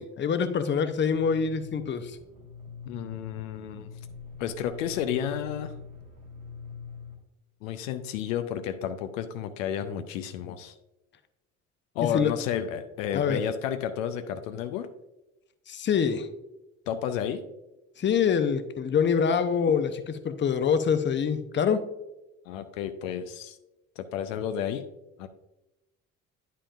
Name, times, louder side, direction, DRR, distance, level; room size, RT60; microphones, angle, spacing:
voice 1, 0.0-2.2 12.1-12.3 13.1-13.4 15.7-16.3 18.0-21.9, left 6 dB, 30° left, 10 dB, 0.7 m, -25 dB
sound 1, 1.0-7.2, left 5 dB, 75° right, 1.8 m, -43 dB
voice 2, 2.9-3.9 4.4-5.7 7.6-10.7 11.9-14.9 16.9-17.4 22.5-23.6 24.0-24.9 25.2-25.3, left 9 dB, 75° left, 9 dB, 0.6 m, -31 dB
9.7 x 5.6 x 2.4 m, 0.96 s
figure-of-eight pair, 50°, 40 cm